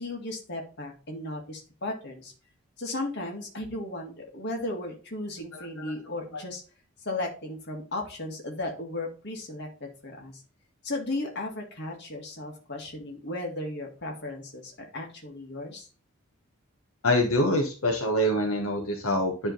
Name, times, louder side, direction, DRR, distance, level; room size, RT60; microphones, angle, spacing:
voice 1, 0.0-2.3 2.8-6.6 7.0-10.4 10.8-15.9, left 2 dB, 50° left, 1 dB, 1.9 m, -35 dB
voice 2, 5.5-5.9 17.0-19.5, left 1 dB, 75° left, 1 dB, 1.2 m, -25 dB
10.0 x 3.7 x 3.9 m, 0.36 s
head